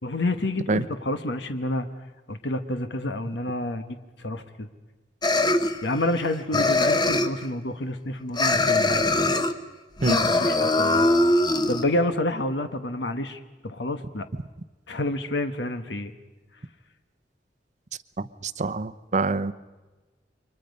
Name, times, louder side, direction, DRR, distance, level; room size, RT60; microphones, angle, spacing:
voice 1, 0.0-1.9 2.3-4.7 5.8-9.0 10.0-11.1 11.7-14.3 14.9-16.1, left 1 dB, 70° left, 8 dB, 1.2 m, -29 dB
sound 1, 5.2-6.2 6.5-7.5 8.4-9.5 10.0-11.8, left 2 dB, 25° left, 1.1 m, -22 dB
voice 2, 18.2-19.5, right 3 dB, 40° right, 14 dB, 0.7 m, -25 dB
29.0 x 24.5 x 5.3 m, 1.2 s
head